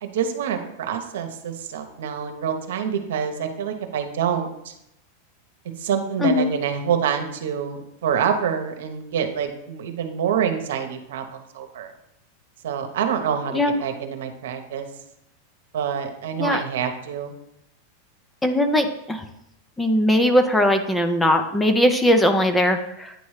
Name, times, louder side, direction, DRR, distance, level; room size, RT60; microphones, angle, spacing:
voice 1, 0.0-4.7 5.8-11.9 12.6-14.9 15.7-17.3, right 8 dB, 80° right, 6 dB, 0.9 m, -26 dB
voice 2, 18.4-19.2 19.8-23.1, left 1 dB, 10° left, 7 dB, 0.6 m, -20 dB
9.2 x 3.1 x 4.8 m, 0.80 s
supercardioid pair, 135°, 0 cm